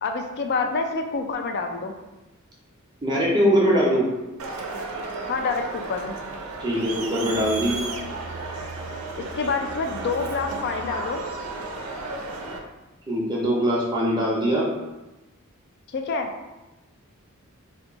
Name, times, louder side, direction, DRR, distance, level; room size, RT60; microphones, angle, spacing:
voice 1, 0.0-2.0 5.3-6.1 9.2-11.3 15.9-16.3, left 4 dB, 50° left, 5 dB, 0.3 m, -27 dB
voice 2, 3.0-4.1 6.6-7.8 13.1-14.7, equal, 20° right, -5 dB, 0.5 m, -22 dB
Crowd, 4.4-12.6, right 3 dB, 75° right, 0.4 m, -33 dB
2.6 x 2.3 x 3.8 m, 1.0 s
head